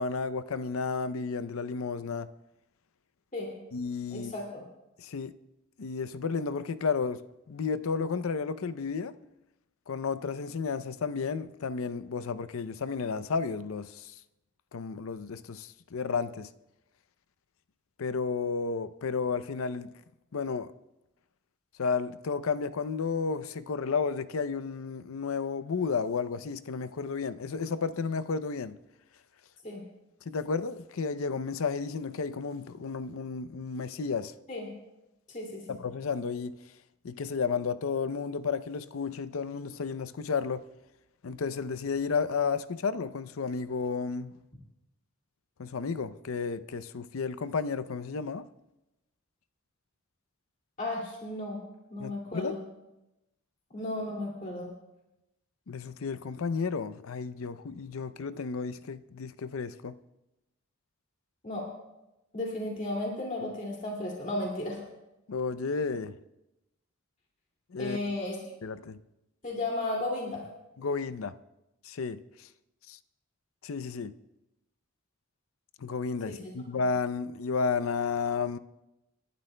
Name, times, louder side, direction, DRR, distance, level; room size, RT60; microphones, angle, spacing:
voice 1, 0.0-2.3 3.7-4.3 5.0-5.4 5.8-9.2 9.9-14.1 14.7-16.5 18.0-19.9 20.3-20.7 21.8-28.8 30.3-34.3 35.7-36.6 37.0-40.6 41.2-44.4 45.6-48.5 52.0-52.5 55.7-60.0 65.3-66.2 67.7-68.0 68.6-69.0 70.8-71.4 71.8-72.5 72.9-73.0 73.6-74.1 75.8-78.6, left 5 dB, 75° left, 0.5 m, -32 dB
voice 2, 4.1-4.6 29.6-29.8 34.5-34.7 35.3-35.7 50.8-51.6 51.9-52.6 53.7-54.7 61.4-61.7 62.3-64.8 67.8-68.4 69.4-70.4 76.3-76.5, left 2 dB, 40° left, 2.3 m, -34 dB
29.5 x 11.5 x 2.2 m
head